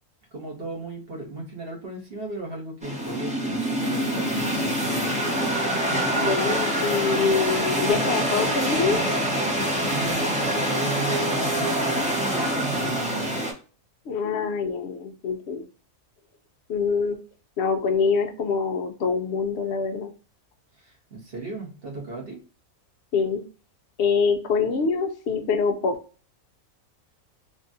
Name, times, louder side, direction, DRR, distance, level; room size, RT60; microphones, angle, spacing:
voice 1, 0.3-5.2 9.6-13.4 20.8-22.4, right 2 dB, 45° right, 0 dB, 1.2 m, -35 dB
sound 1, 2.8-13.5, equal, 10° right, 0.3 m, -25 dB
voice 2, 6.2-9.0 14.1-15.6 16.7-17.2 17.6-20.1 23.1-23.4 24.0-26.0, left 5 dB, 65° left, 4 dB, 0.7 m, -25 dB
3.4 x 2.4 x 2.5 m, 0.37 s
omnidirectional pair, 1.5 m